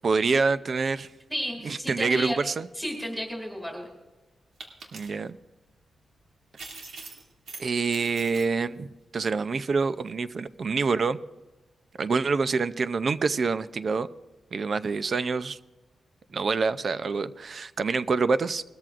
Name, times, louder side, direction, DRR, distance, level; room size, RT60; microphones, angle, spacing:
voice 1, 0.0-1.1 1.6-2.7 4.9-5.4 7.6-8.9 9.1-11.2 12.0-14.1 14.5-15.6 16.3-18.6, right 4 dB, 45° right, 14 dB, 0.5 m, -26 dB
voice 2, 1.3-2.4 2.7-3.9, equal, ahead, 0 dB, 2.4 m, -32 dB
sound 1, 4.6-5.2 6.6-7.6 7.9-8.5, right 4 dB, 80° right, 2.5 m, -42 dB
20.5 x 13.5 x 2.5 m, 1.1 s
wide cardioid pair, 155°, 0 cm